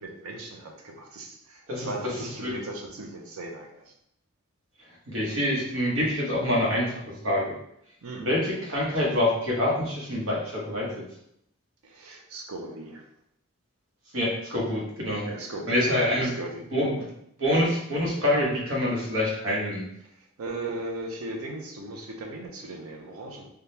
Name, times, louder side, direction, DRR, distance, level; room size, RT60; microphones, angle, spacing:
voice 1, 0.0-3.9 8.0-8.3 11.8-13.0 15.3-16.6 17.0-17.1 18.9-19.1 20.1-23.5, right 2 dB, 90° right, 2 dB, 0.6 m, -38 dB
voice 2, 1.7-2.1 2.4-2.5 5.1-6.9 7.2-7.5 8.2-10.9 14.1-15.3 15.7-16.3 16.7-17.1 17.4-19.8, left 1 dB, 70° right, -4 dB, 1.0 m, -26 dB
3.5 x 2.3 x 2.7 m, 0.75 s
head